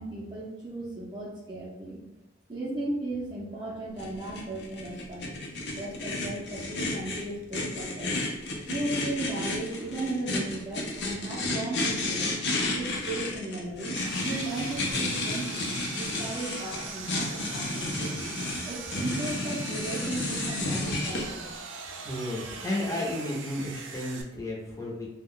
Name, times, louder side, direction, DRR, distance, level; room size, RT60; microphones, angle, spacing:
voice 1, 0.0-2.0 2.5-5.3 5.7-8.2 8.7-12.3 12.7-21.6, right 2 dB, 25° right, -6 dB, 0.6 m, -36 dB
sound 1, 4.0-21.2, left 2 dB, 65° left, 0.6 m, -32 dB
Sawing, 14.0-24.2, right 5 dB, 85° right, 0.4 m, -40 dB
voice 2, 22.0-25.1, left 1 dB, 15° left, -3 dB, 0.7 m, -33 dB
2.3 x 2.1 x 3.6 m, 0.99 s
head